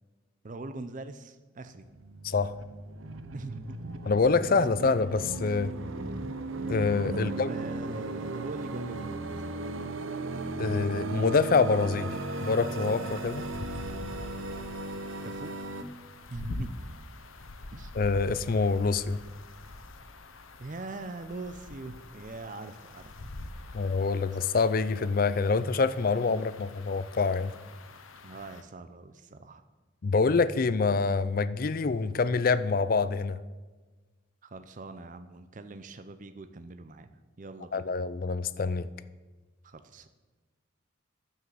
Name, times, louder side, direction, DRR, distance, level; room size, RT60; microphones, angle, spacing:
voice 1, 0.4-1.9 3.3-4.0 4.4-4.5 7.1-9.4 15.2-15.5 16.3-16.7 17.7-18.0 20.6-23.3 28.2-29.6 34.4-37.9 39.6-40.1, right 2 dB, 40° right, 10 dB, 0.5 m, -42 dB
sound 1, 1.8-15.8, right 2 dB, 75° right, 0.8 m, -36 dB
voice 2, 4.1-5.7 6.7-7.5 10.6-13.5 18.0-19.2 23.7-27.5 30.0-33.4 37.7-38.9, left 4 dB, 45° left, 15 dB, 0.4 m, -26 dB
sound 2, 12.1-28.6, left 2 dB, 85° left, 1.0 m, -45 dB
9.8 x 7.3 x 7.7 m, 1.3 s
head